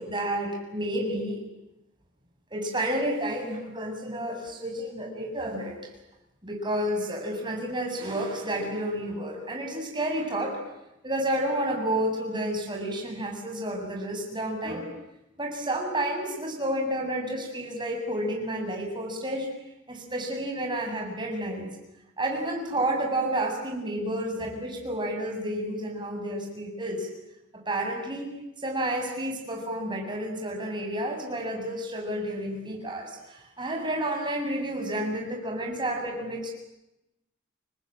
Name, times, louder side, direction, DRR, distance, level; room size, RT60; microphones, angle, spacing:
voice 1, 0.0-1.4 2.5-5.7 6.4-10.6 11.0-14.9 15.4-19.5 19.9-21.7 22.2-27.1 27.7-28.3 28.6-36.5, right 1 dB, 25° right, 1 dB, 7.5 m, -30 dB
30.0 x 20.5 x 9.0 m, 0.90 s
head